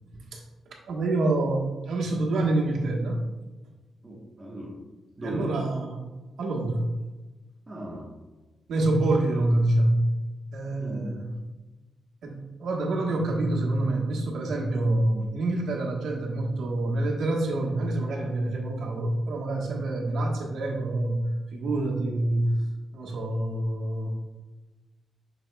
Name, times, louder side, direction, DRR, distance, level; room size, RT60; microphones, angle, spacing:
voice 1, 0.9-3.2 5.2-6.1 6.4-6.9 8.7-10.1 10.5-11.3 12.2-21.2 21.5-22.5 22.9-24.1, right 2 dB, 80° right, -1 dB, 1.3 m, -26 dB
voice 2, 4.0-4.7 5.2-5.5 7.7-8.1 10.8-11.1, right 1 dB, 20° right, -2 dB, 1.2 m, -37 dB
7.1 x 6.2 x 2.3 m, 1.2 s
wide cardioid pair, 155°, 0 cm